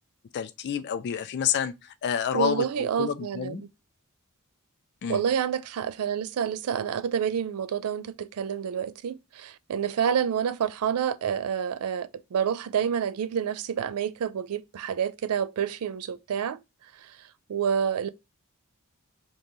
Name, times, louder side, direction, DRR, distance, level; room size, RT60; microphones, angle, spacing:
voice 1, 0.3-3.6 5.0-5.2, left 8 dB, 50° left, 0.3 m, -29 dB
voice 2, 2.3-3.7 5.1-16.6 17.0-17.2 17.5-18.1, right 8 dB, 75° right, 0.4 m, -28 dB
5.2 x 3.0 x 2.6 m
head